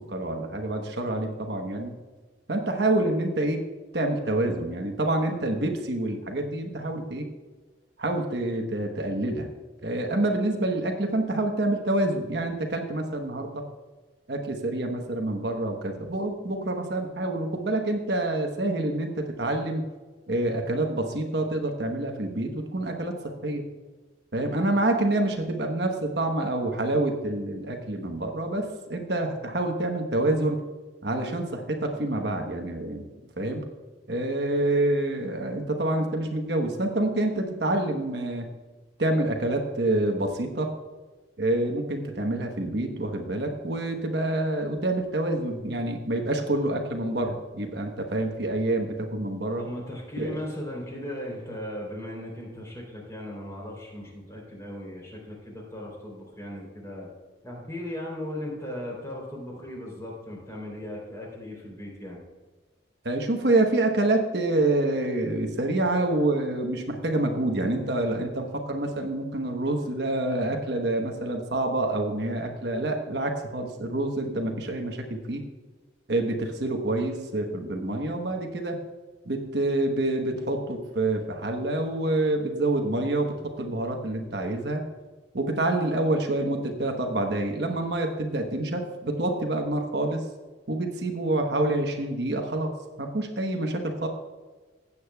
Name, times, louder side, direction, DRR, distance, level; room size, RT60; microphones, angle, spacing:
voice 1, 0.0-1.9 2.5-3.6 3.9-7.3 8.0-9.5 9.8-13.6 14.3-19.8 20.3-23.6 24.3-30.6 31.0-33.0 33.4-33.6 34.1-38.5 39.0-40.7 41.4-49.6 50.2-50.4 63.0-75.4 76.1-78.8 79.2-84.8 85.3-90.2 90.7-92.7 93.0-94.1, right 2 dB, 60° right, 3 dB, 1.1 m, -27 dB
voice 2, 49.6-57.1 57.4-62.2, left 1 dB, 15° left, -3 dB, 3.4 m, -37 dB
16.5 x 8.4 x 2.3 m, 1.3 s
head